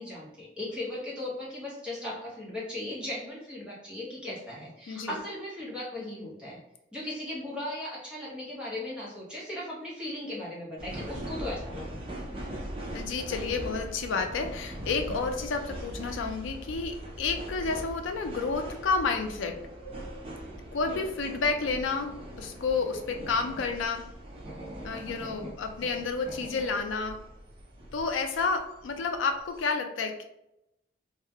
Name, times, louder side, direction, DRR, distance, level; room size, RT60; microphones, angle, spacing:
voice 1, 0.0-6.6 6.9-12.0 20.9-21.0, left 1 dB, 5° right, -7 dB, 0.7 m, -37 dB
sound 1, 10.8-29.7, right 1 dB, 30° right, 0.4 m, -41 dB
voice 2, 12.9-19.6 20.7-24.1 24.8-27.2 27.9-30.2, left 4 dB, 75° left, 5 dB, 0.4 m, -30 dB
2.2 x 2.1 x 2.7 m, 0.85 s
head